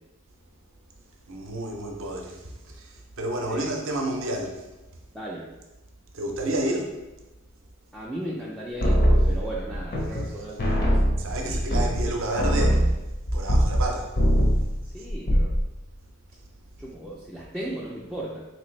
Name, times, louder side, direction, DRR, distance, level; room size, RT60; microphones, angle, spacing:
voice 1, 1.3-4.7 6.1-7.0 11.2-12.9 13.3-14.2, right 1 dB, 60° right, 2 dB, 0.6 m, -30 dB
voice 2, 5.1-5.5 7.9-11.9 14.8-15.5 16.8-18.5, right 1 dB, ahead, -7 dB, 0.3 m, -36 dB
sound 1, 8.8-10.3 10.6-13.9 14.1-14.7 15.1-15.6, equal, 45° left, 0.6 m, -21 dB
3.3 x 2.8 x 3.1 m, 1.0 s
head